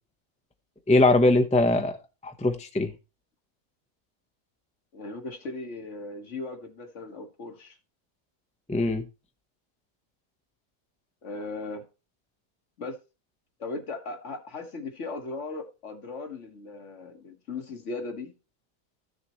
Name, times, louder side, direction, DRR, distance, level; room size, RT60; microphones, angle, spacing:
voice 1, 0.9-2.0 2.2-2.9 8.7-9.0, left 2 dB, 5° left, 0.7 m, -21 dB
voice 2, 4.9-7.8 11.2-11.8 12.8-12.9 13.6-18.3, left 3 dB, 60° left, 1.8 m, -37 dB
14.0 x 6.6 x 3.0 m
omnidirectional pair, 1.4 m